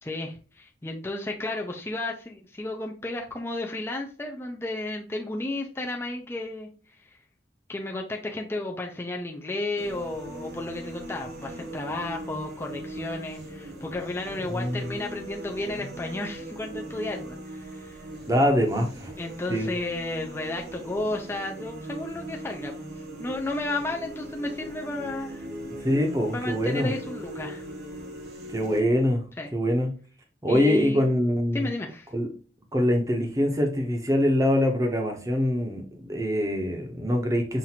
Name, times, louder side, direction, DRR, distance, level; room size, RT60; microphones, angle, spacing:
voice 1, 0.0-6.7 7.7-18.1 19.2-22.9 23.2-25.5 26.3-27.7 29.4-29.5 30.5-31.1 31.5-32.1, left 2 dB, 15° left, 0.4 m, -33 dB
sound 1, 9.8-28.8, right 1 dB, 60° right, 1.0 m, -40 dB
voice 2, 14.5-14.9 18.3-19.1 19.5-19.7 25.8-26.9 28.5-29.2 29.5-29.9 30.4-31.7 32.1-32.3 32.7-37.6, equal, 20° right, 0.7 m, -24 dB
5.7 x 2.5 x 2.8 m
head